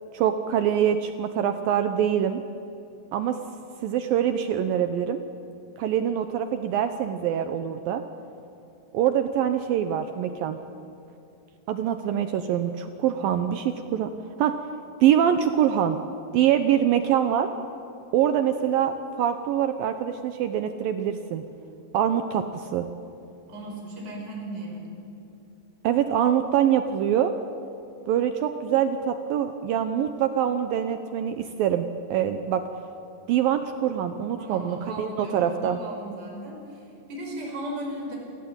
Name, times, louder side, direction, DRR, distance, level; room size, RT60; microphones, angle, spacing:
voice 1, 0.1-2.4 3.1-3.4 3.8-5.2 5.8-8.0 8.9-10.6 11.7-14.1 14.4-14.5 15.0-16.0 16.3-17.5 18.1-21.4 21.9-22.9 25.8-27.3 28.1-32.6 33.3-35.8, right 9 dB, 80° right, 9 dB, 2.0 m, -24 dB
voice 2, 23.5-25.0 34.4-38.2, right 1 dB, 25° right, -1 dB, 5.6 m, -36 dB
28.0 x 17.5 x 8.8 m, 2.7 s
omnidirectional pair, 5.3 m